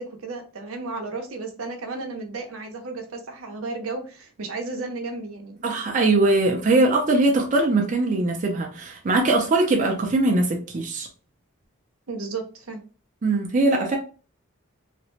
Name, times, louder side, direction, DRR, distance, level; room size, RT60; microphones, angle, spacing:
voice 1, 0.0-5.6 12.1-12.8, right 3 dB, 85° right, 0.6 m, -33 dB
voice 2, 5.6-11.1 13.2-14.0, right 2 dB, 35° right, 0.4 m, -21 dB
2.4 x 2.0 x 3.0 m
head